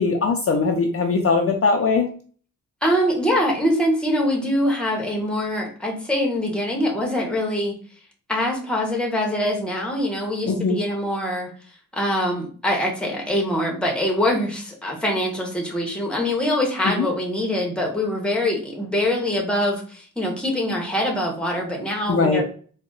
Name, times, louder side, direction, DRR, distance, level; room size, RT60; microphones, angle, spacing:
voice 1, 0.0-2.1 10.5-10.8 16.8-17.1 22.1-22.4, left 4 dB, 45° left, 2 dB, 0.4 m, -20 dB
voice 2, 2.8-7.7 8.3-11.5 11.9-22.4, left 1 dB, 5° left, -1 dB, 0.8 m, -23 dB
3.8 x 2.1 x 3.8 m, 0.43 s
wide cardioid pair, 180°, 32 cm